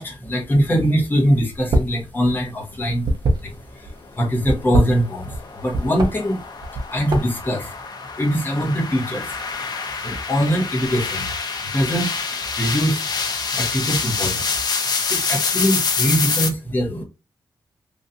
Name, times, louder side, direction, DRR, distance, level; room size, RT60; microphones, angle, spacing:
voice 1, 0.0-3.1 3.4-6.4 6.9-7.8 8.2-9.4 10.0-11.3 11.6-13.1 13.5-14.6 15.1-17.0, equal, 25° left, 1.0 m, -22 dB
sound 1, 1.6-2.0 2.3-3.9 4.4-5.4 5.7-6.1 6.6-7.5, right 1 dB, 55° right, 0.7 m, -21 dB
sound 2, 4.4-16.5, left 5 dB, 55° left, 0.6 m, -26 dB
3.0 x 2.6 x 2.6 m
wide cardioid pair, 155°, 8 cm